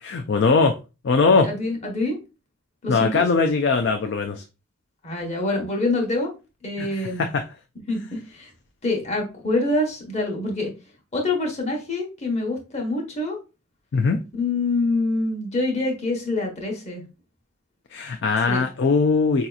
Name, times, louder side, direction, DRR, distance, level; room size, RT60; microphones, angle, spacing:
voice 1, 0.0-0.7 1.0-1.5 2.9-4.4 6.8-6.9 7.2-7.4 13.9-14.2 17.9-19.5, left 4 dB, 55° left, 0.3 m, -20 dB
voice 2, 1.3-2.2 2.8-3.2 5.0-6.3 6.6-7.2 7.9-8.5 8.8-10.7 11.1-13.4 14.3-17.0 18.5-18.7, left 2 dB, 30° left, 1.0 m, -25 dB
4.9 x 2.8 x 2.3 m
head